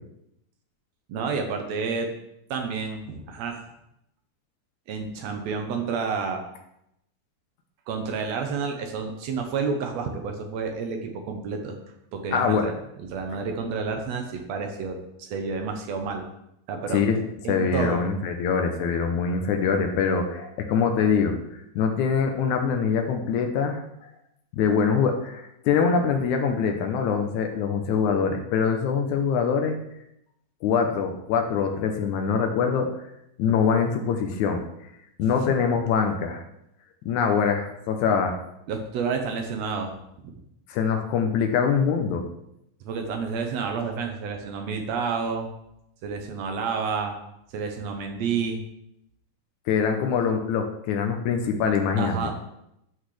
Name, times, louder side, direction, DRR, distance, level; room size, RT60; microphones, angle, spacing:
voice 1, 1.1-2.1 2.5-3.6 4.9-6.4 7.9-11.8 12.1-12.7 13.0-16.2 16.7-18.0 35.5-35.6 38.7-39.9 40.2-40.3 42.8-45.5 46.0-47.1 47.5-48.6 52.0-52.3, right 5 dB, 85° right, 4 dB, 1.5 m, -30 dB
voice 2, 12.3-12.7 16.9-17.2 17.5-23.8 24.5-29.8 30.6-32.9 33.4-34.6 35.2-36.4 37.1-38.4 40.7-42.2 49.7-52.3, left 6 dB, 80° left, 4 dB, 1.8 m, -24 dB
12.0 x 6.1 x 3.2 m, 0.81 s
omnidirectional pair, 4.2 m